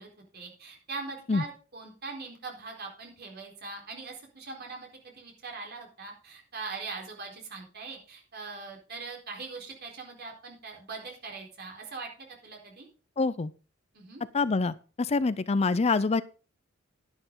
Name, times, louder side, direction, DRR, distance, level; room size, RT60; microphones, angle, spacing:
voice 1, 0.0-12.1 12.4-12.9 13.9-14.2, right 4 dB, 50° right, 1 dB, 4.1 m, -41 dB
voice 2, 13.2-13.5 14.3-16.2, left 3 dB, 30° left, 16 dB, 0.5 m, -26 dB
11.0 x 11.0 x 3.8 m, 0.35 s
head